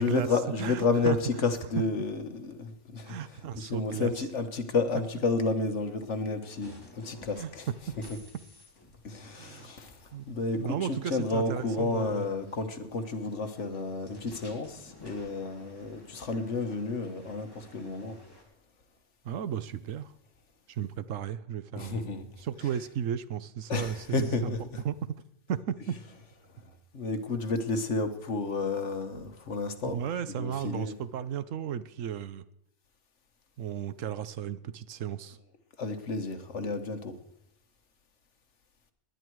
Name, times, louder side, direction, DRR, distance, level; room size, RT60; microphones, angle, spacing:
voice 1, 0.0-3.1 3.5-7.7 9.0-9.9 10.3-18.2 21.7-22.3 23.7-24.8 26.9-30.0 30.4-30.9 35.8-37.1, left 3 dB, 70° left, 8 dB, 1.6 m, -31 dB
voice 2, 0.6-1.2 3.0-4.1 7.4-7.5 9.3-9.7 10.1-12.2 19.2-20.1 20.7-22.0 22.4-24.5 24.8-24.9 25.5-25.9 29.9-32.4 33.6-35.4, right 9 dB, 85° right, 15 dB, 1.1 m, -34 dB
sound 1, 6.4-18.4, left 1 dB, 20° left, 2.8 m, -54 dB
19.0 x 10.5 x 4.6 m, 0.82 s
omnidirectional pair, 1.3 m